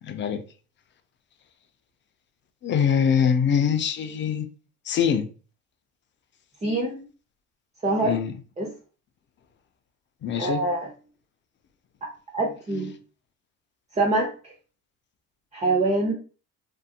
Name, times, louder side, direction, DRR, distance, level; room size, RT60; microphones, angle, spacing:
voice 1, 0.0-0.4 2.6-4.5 4.9-5.3 8.0-8.3 10.2-10.6, left 7 dB, 25° left, 0.4 m, -23 dB
voice 2, 6.6-7.0 7.8-8.2 8.6-8.7 10.4-10.9 12.0-12.9 13.9-14.5 15.5-16.1, right 2 dB, 15° right, 0.7 m, -25 dB
2.7 x 2.5 x 2.4 m
hypercardioid pair, 80°, 46 cm